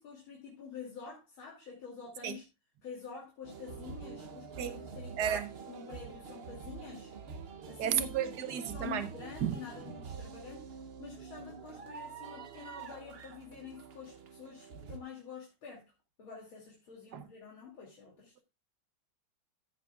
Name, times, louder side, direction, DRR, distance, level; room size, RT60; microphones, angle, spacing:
voice 1, 0.0-2.4 2.8-7.1 7.7-10.7 11.0-15.8 16.2-18.3, left 6 dB, 85° left, 3.4 m, -47 dB
sound 1, 3.4-15.0, right 6 dB, 90° right, 0.5 m, -46 dB
voice 2, 5.2-5.5 7.8-9.1 9.4-9.6 17.1-17.2, right 9 dB, 60° right, 1.3 m, -32 dB
14.5 x 8.2 x 2.4 m
omnidirectional pair, 2.2 m